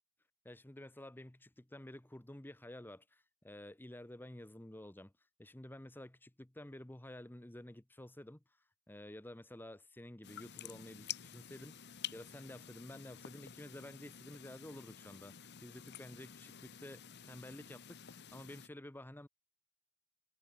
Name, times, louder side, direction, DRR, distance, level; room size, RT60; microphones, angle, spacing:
voice 1, 0.4-5.1 5.4-8.4 8.9-19.3, left 1 dB, 10° left, 0.8 m, -51 dB
sound 1, 10.2-18.7, left 9 dB, 50° left, 1.0 m, -50 dB
head